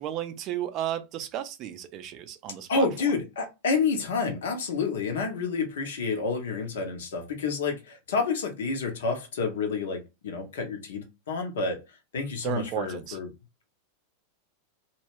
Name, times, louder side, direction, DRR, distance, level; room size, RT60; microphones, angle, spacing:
voice 1, 0.0-2.9 12.4-13.2, right 11 dB, 35° right, 0.4 m, -33 dB
voice 2, 2.7-11.8 12.1-13.3, left 4 dB, 60° left, 0.7 m, -29 dB
2.2 x 2.1 x 3.2 m
figure-of-eight pair, 90°, 0 cm